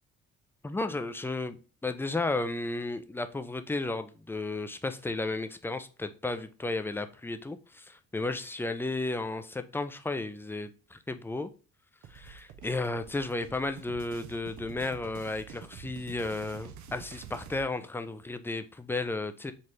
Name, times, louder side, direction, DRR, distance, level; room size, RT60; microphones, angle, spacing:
voice 1, 0.6-11.5 12.1-19.5, left 2 dB, 10° left, 10 dB, 0.3 m, -33 dB
sound 1, 12.0-17.6, right 8 dB, 70° right, 0.6 m, -48 dB
4.3 x 2.5 x 3.1 m, 0.36 s
cardioid pair, 90°, 30 cm